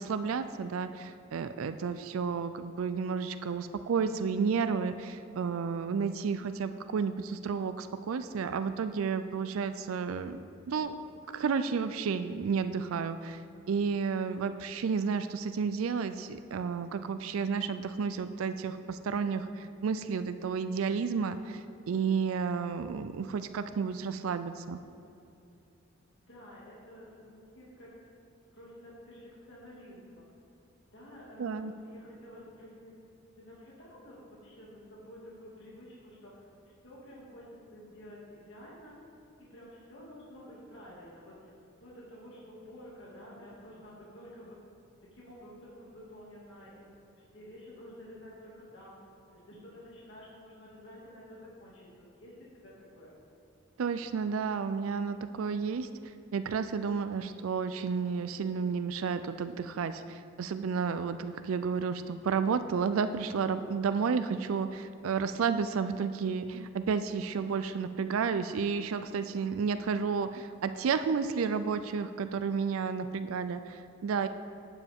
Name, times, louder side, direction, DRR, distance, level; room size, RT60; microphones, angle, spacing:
voice 1, 0.0-10.4 10.7-11.0 11.3-13.4 13.7-24.8 31.4-31.7 53.8-74.3, right 5 dB, 80° right, 10 dB, 0.4 m, -31 dB
voice 2, 26.3-28.1 28.5-30.2 30.9-32.9 33.3-39.1 39.5-44.6 45.1-51.9 52.2-53.1 72.8-73.3, equal, 60° left, -6 dB, 2.2 m, -51 dB
11.5 x 9.1 x 3.6 m, 2.7 s
head